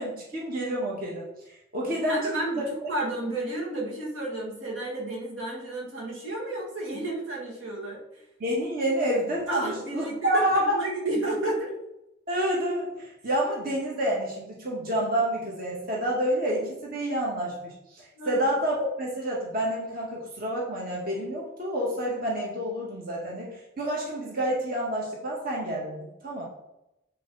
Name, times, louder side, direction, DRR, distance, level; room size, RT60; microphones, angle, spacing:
voice 1, 0.0-2.2 2.6-2.9 8.4-10.8 12.3-26.5, equal, 50° right, -3 dB, 1.8 m, -29 dB
voice 2, 2.0-8.2 9.5-11.7 18.2-18.4, right 2 dB, 80° right, -3 dB, 2.3 m, -31 dB
7.4 x 6.2 x 4.2 m, 0.87 s
head